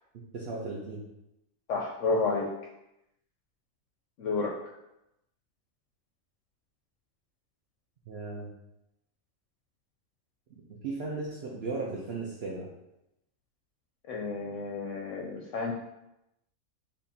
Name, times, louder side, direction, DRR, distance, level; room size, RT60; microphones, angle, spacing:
voice 1, 0.3-1.0 8.1-8.5 10.8-12.7, right 3 dB, 55° right, -4 dB, 0.8 m, -36 dB
voice 2, 1.7-2.5 4.2-4.5 14.1-15.7, left 3 dB, 70° left, -1 dB, 0.9 m, -30 dB
7.0 x 2.5 x 2.7 m, 0.89 s
omnidirectional pair, 1.5 m